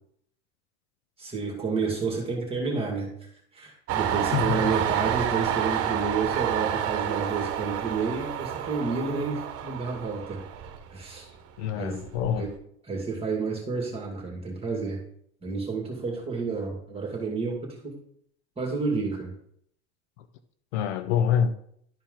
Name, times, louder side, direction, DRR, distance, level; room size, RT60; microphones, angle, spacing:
voice 1, 1.2-3.1 3.5-10.5 10.9-11.2 11.7-12.0 12.4-12.5 12.9-15.0 15.4-18.0 18.6-19.3, right 4 dB, 15° right, -1 dB, 2.2 m, -30 dB
Train, 3.9-11.3 11.7-12.5, right 10 dB, 45° right, 1.2 m, -29 dB
voice 2, 4.3-4.7 11.6-12.5 20.7-21.5, left 8 dB, 80° left, 11 dB, 0.7 m, -26 dB
12.0 x 4.3 x 3.9 m, 0.68 s
supercardioid pair, 120°, 34 cm